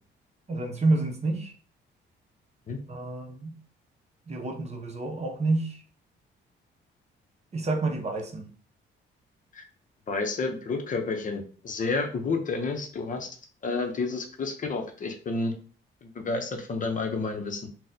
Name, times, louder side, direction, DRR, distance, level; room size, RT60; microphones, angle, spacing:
voice 1, 0.5-1.5 2.9-3.6 4.3-5.8 7.5-8.5, right 2 dB, 35° right, 2 dB, 0.7 m, -28 dB
voice 2, 10.1-13.3 13.6-15.5 16.0-17.6, left 3 dB, 40° left, 4 dB, 0.6 m, -30 dB
3.9 x 2.0 x 2.6 m, 0.41 s
cardioid pair, 90°, 20 cm